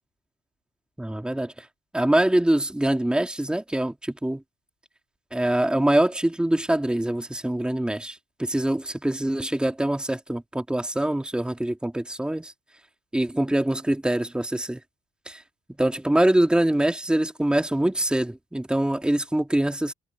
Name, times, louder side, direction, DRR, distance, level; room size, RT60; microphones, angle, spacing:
voice 1, 1.0-1.5 1.9-4.4 5.3-12.5 13.1-14.8 15.3-15.4 15.8-19.9, right 1 dB, 5° right, 2.3 m, -24 dB
cardioid pair, 95°, 17 cm